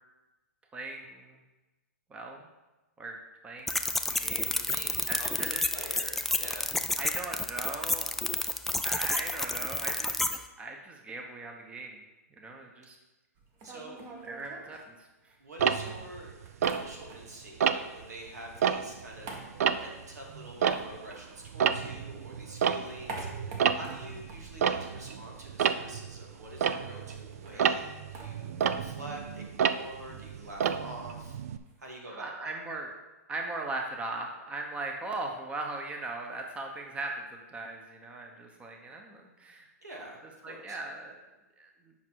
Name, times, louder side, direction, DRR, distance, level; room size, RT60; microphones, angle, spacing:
voice 1, 0.7-1.4 2.1-2.5 3.0-3.2 3.4-3.8 4.1-4.6 5.1-5.6 7.0-8.1 8.8-10.2 10.6-12.0 12.3-13.0 14.2-15.4 26.9-27.0 27.5-27.8 32.1-32.9 33.3-39.7 40.4-41.2 41.6-41.9, right 2 dB, 15° right, 2 dB, 0.9 m, -39 dB
sound 1, 3.7-10.4, left 2 dB, 5° left, 0.3 m, -30 dB
voice 2, 4.5-6.6 13.6-14.0 15.4-31.4 31.8-32.5 39.8-40.8, right 1 dB, 90° right, 0 dB, 2.2 m, -46 dB
sound 2, 13.4-15.5 15.9-17.5 17.8-21.9 22.2-25.5 25.8-25.9 26.2-32.0, right 2 dB, 35° right, 1.5 m, -48 dB
Tick-tock, 15.6-17.2 17.6-18.0 18.5-21.2 21.4-31.6, right 7 dB, 65° right, 0.5 m, -30 dB
8.4 x 5.5 x 4.6 m, 1.1 s
hypercardioid pair, 130°, 9 cm